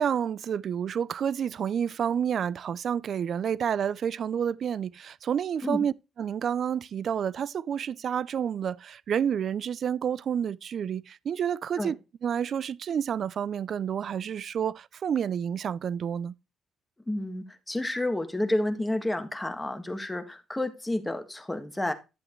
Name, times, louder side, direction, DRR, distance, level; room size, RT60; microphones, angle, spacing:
voice 1, 0.0-12.0 12.2-16.3, right 8 dB, 60° right, 0.4 m, -29 dB
voice 2, 17.1-21.9, left 1 dB, 10° left, 1.7 m, -30 dB
11.0 x 7.7 x 3.1 m
cardioid pair, 90°, 0 cm